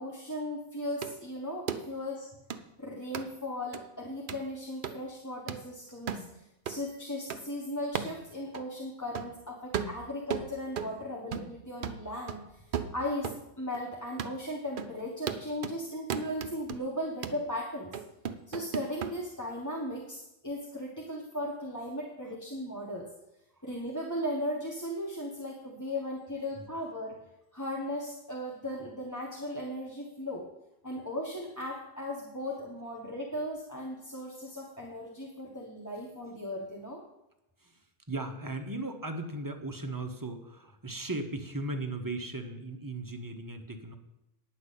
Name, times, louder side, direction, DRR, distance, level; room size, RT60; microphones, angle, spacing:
voice 1, 0.0-2.3 2.8-12.6 12.9-13.3 13.6-17.9 18.5-23.1 23.6-27.2 27.5-30.5 30.8-37.0, left 1 dB, 15° left, -2 dB, 1.1 m, -37 dB
slapping medium-box, 1.0-1.1 1.7-1.8 2.5-2.6 3.1-3.3 3.7-3.8 4.3-4.5 4.8-5.0 5.5-5.6 6.1-6.3 6.7-6.8 7.3-7.4 7.9-8.2 8.5-8.6 9.1-9.3 9.7-11.0 11.3-11.6 11.8-13.4 13.7-13.8 14.2-14.4 14.8-14.9 15.3-15.8 16.1-16.8 17.2-17.4 17.9-19.1, right 7 dB, 50° right, 0.7 m, -36 dB
voice 2, 38.1-44.0, right 2 dB, 20° right, 4 dB, 0.9 m, -37 dB
9.7 x 5.7 x 8.3 m, 0.89 s
omnidirectional pair, 1.3 m